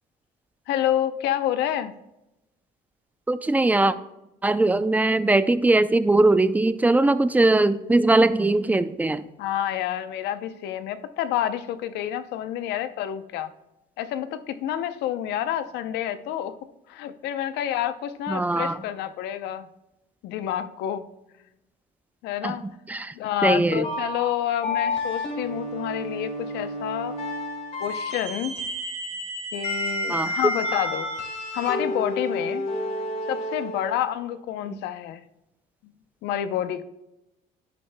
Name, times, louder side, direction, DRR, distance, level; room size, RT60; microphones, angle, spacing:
voice 1, 0.7-1.9 9.4-13.5 14.0-16.5 16.9-19.7 20.2-21.0 22.2-22.7 23.1-27.2 27.8-28.6 29.5-31.1 31.5-32.7 33.3-35.2 36.2-36.8, left 11 dB, 85° left, 11 dB, 0.7 m, -28 dB
voice 2, 3.3-3.9 4.4-9.3 18.3-18.8 22.4-22.5 22.9-23.1 23.4-23.8 30.1-30.3, right 2 dB, 10° right, 13 dB, 0.4 m, -20 dB
sound 1, 23.8-34.0, left 1 dB, 45° left, 2.4 m, -30 dB
10.0 x 10.0 x 2.2 m, 0.91 s
cardioid pair, 110°, 17 cm